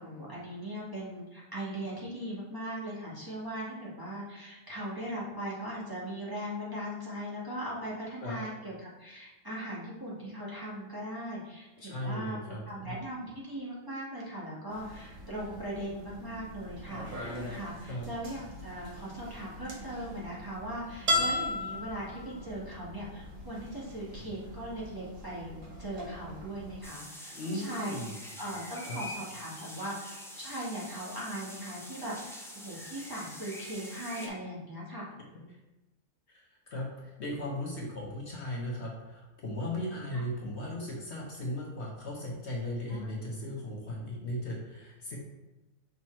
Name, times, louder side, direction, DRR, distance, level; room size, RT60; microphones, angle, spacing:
voice 1, 0.0-28.0 28.4-35.1 40.1-40.2 42.9-43.1, right 1 dB, 15° right, -8 dB, 1.5 m, -39 dB
voice 2, 11.8-12.9 17.9-18.1 27.3-28.1 28.9-29.0 35.3-35.5 36.3-45.2, left 1 dB, 55° left, -2 dB, 1.2 m, -37 dB
sound 1, 14.7-26.8, left 1 dB, 70° right, 1.7 m, -38 dB
sound 2, 26.8-34.3, equal, 5° left, 0.3 m, -45 dB
6.0 x 3.6 x 4.3 m, 1.0 s
omnidirectional pair, 1.5 m